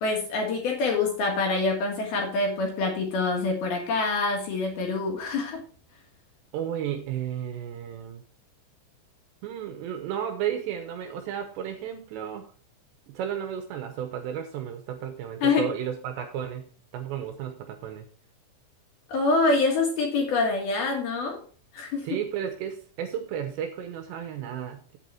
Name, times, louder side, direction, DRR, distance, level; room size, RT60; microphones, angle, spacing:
voice 1, 0.0-5.6 15.4-15.7 19.1-21.4 21.7-22.2, left 3 dB, 60° left, 1 dB, 3.0 m, -25 dB
voice 2, 6.5-8.2 9.4-12.5 13.1-16.7 16.9-18.1 22.0-25.0, right 9 dB, 75° right, 6 dB, 2.8 m, -33 dB
8.4 x 8.2 x 4.4 m, 0.42 s
omnidirectional pair, 5.8 m